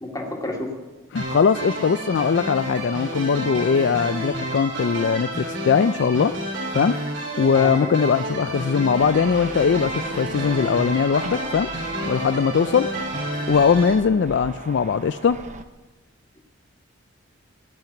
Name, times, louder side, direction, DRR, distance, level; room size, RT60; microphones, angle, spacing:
voice 1, 0.0-0.7 7.5-7.9, left 1 dB, 20° left, -1 dB, 2.2 m, -30 dB
voice 2, 1.1-6.4 6.7-7.0 7.4-11.7 12.0-12.9 13.5-15.4, left 6 dB, 60° left, 12 dB, 0.3 m, -20 dB
sound 1, 1.2-13.9, right 1 dB, 60° right, 3.6 m, -30 dB
sound 2, 9.0-15.6, right 3 dB, 35° right, 0.7 m, -39 dB
17.5 x 5.9 x 8.9 m, 1.2 s
head